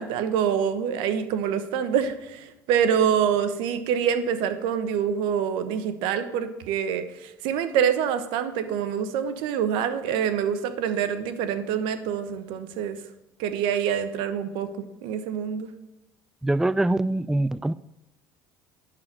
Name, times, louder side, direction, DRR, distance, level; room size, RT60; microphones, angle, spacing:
voice 1, 0.0-13.0 13.4-14.7 15.0-15.7, right 8 dB, 75° right, 1.1 m, -26 dB
voice 2, 16.4-17.7, right 2 dB, 5° right, 0.3 m, -23 dB
11.0 x 4.9 x 7.3 m
supercardioid pair, 85°, 9 cm